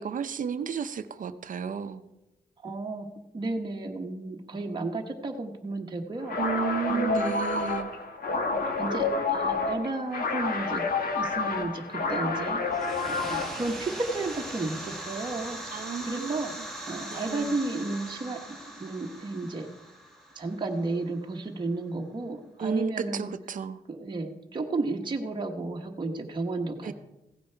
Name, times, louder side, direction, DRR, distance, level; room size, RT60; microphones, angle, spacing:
voice 1, 0.0-2.0 6.3-7.9 15.7-16.5 17.1-17.6 22.6-23.8 26.8-26.9, right 6 dB, 55° right, 0.6 m, -33 dB
voice 2, 2.6-3.1 3.3-6.4 6.9-7.4 8.8-10.8 11.1-12.6 13.1-15.6 16.1-16.5 16.9-19.7 20.3-23.3 23.9-26.9, right 2 dB, 30° right, 1.1 m, -33 dB
sound 1, 6.2-13.7, left 3 dB, 60° left, 1.4 m, -29 dB
sound 2, 12.7-21.2, right 1 dB, ahead, 2.0 m, -40 dB
15.5 x 9.3 x 4.5 m
wide cardioid pair, 135°, 16 cm